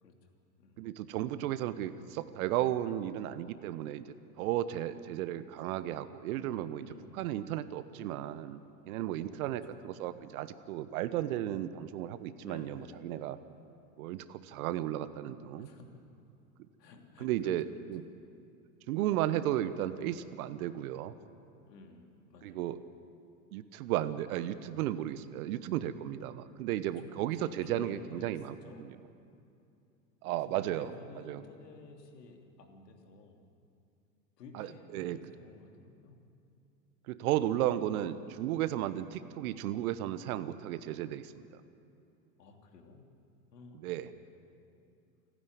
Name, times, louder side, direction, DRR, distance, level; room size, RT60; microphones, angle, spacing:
voice 1, 0.8-4.0 4.4-8.6 8.9-13.4 14.0-15.7 17.2-18.0 18.9-21.1 22.4-22.8 23.5-29.0 30.2-30.9 31.2-31.4 34.5-35.2 37.1-41.5 43.7-44.1, right 12 dB, 55° right, 13 dB, 1.2 m, -34 dB
voice 2, 6.8-7.2 9.2-9.4 12.4-13.3 15.6-15.9 16.8-17.8 21.6-22.6 26.9-28.9 30.2-33.4 34.4-36.1 42.4-43.1 43.5-44.5, left 3 dB, 70° left, 3 dB, 3.1 m, -52 dB
28.0 x 9.8 x 9.5 m, 2.6 s
hypercardioid pair, 95°, 50 cm